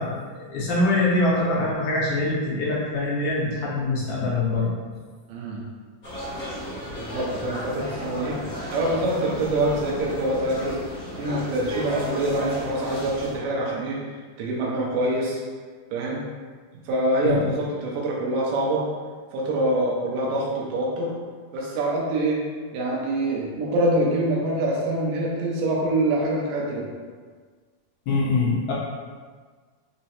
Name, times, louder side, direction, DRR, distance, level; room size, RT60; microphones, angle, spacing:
voice 1, 0.0-4.7 17.2-17.4 28.1-28.7, left 2 dB, 80° left, -6 dB, 1.8 m, -24 dB
voice 2, 5.3-5.6 7.0-8.4 8.7-10.8 11.2-14.0 14.4-15.4 15.9-16.2 16.9-18.8 19.3-21.1 21.5-22.4 22.7-26.9, right 1 dB, 85° right, -3 dB, 2.2 m, -25 dB
sound 1, 6.0-13.4, equal, 55° left, 1.0 m, -34 dB
5.4 x 2.0 x 2.8 m, 1.5 s
omnidirectional pair, 3.8 m